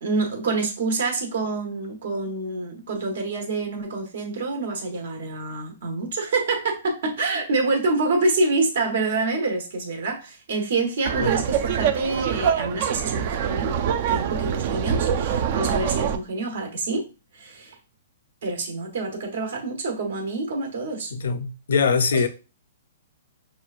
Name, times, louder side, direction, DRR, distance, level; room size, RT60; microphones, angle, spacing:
voice 1, 0.0-13.7 14.1-17.0 17.3-17.8 18.4-21.1 22.1-22.3, right 3 dB, 65° right, 1.3 m, -27 dB
Laughter, 11.1-16.2, right 8 dB, 40° right, 0.3 m, -24 dB
voice 2, 21.1-22.3, left 5 dB, 75° left, 0.5 m, -22 dB
6.1 x 2.2 x 2.4 m
hypercardioid pair, 160°, 0 cm